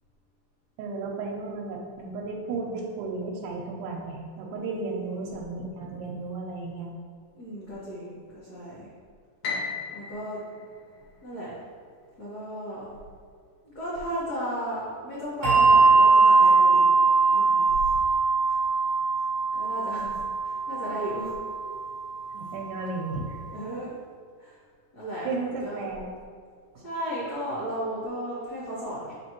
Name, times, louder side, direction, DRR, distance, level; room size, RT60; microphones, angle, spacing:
voice 1, 0.8-6.9 22.3-23.4 25.3-26.1, right 3 dB, 90° right, -1 dB, 2.2 m, -34 dB
voice 2, 4.6-5.2 7.3-8.9 9.9-10.4 11.2-11.5 12.2-12.9 13.6-16.9 17.3-17.9 18.5-18.6 19.5-20.2 20.4-21.3 23.5-23.9 24.4-24.5 24.9-25.3 25.6-25.8 26.8-29.1, equal, 45° left, -10 dB, 1.3 m, -35 dB
Piano, 9.4-11.7, left 4 dB, 75° left, 2.4 m, -36 dB
Bell, 15.4-22.3, right 4 dB, 65° right, 1.3 m, -21 dB
7.6 x 4.2 x 3.0 m, 2.1 s
omnidirectional pair, 3.6 m